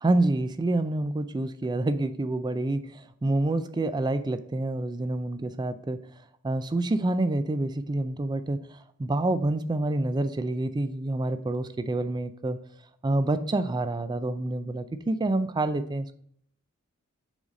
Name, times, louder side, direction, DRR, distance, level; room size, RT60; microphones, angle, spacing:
voice 1, 0.0-6.0 6.4-8.6 9.0-12.6 13.0-16.1, right 2 dB, 20° right, 11 dB, 0.3 m, -27 dB
6.0 x 4.0 x 4.0 m, 0.64 s
head